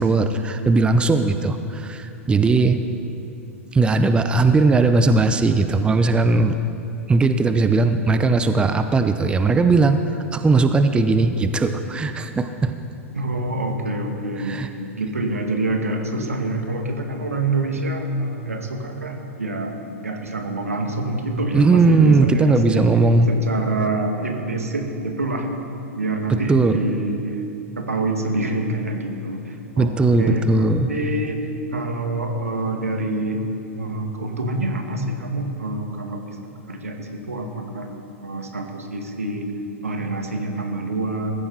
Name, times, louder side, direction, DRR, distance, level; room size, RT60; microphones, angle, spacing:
voice 1, 0.0-2.8 3.7-6.6 7.1-10.0 10.3-12.7 14.4-14.7 21.5-23.3 26.5-26.8 29.8-30.9, right 3 dB, 15° right, 9 dB, 0.7 m, -18 dB
voice 2, 13.1-14.6 15.0-22.9 23.3-25.5 25.9-27.4 27.8-33.4 33.8-36.4 36.7-39.5 39.8-41.3, right 2 dB, 85° right, 3 dB, 2.1 m, -26 dB
21.0 x 15.0 x 4.2 m, 2.7 s
figure-of-eight pair, 100°, 8 cm